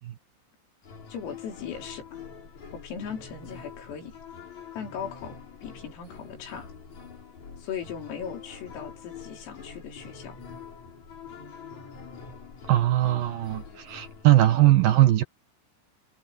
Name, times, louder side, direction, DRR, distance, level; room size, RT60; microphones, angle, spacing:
sound 1, 0.8-14.7, left 6 dB, 35° left, 5.3 m, -45 dB
voice 1, 1.1-2.2 2.7-4.2 4.7-6.7 7.6-10.4, left 7 dB, 85° left, 7.0 m, -38 dB
voice 2, 12.7-15.2, right 14 dB, 70° right, 2.2 m, -20 dB
omnidirectional pair, 5.9 m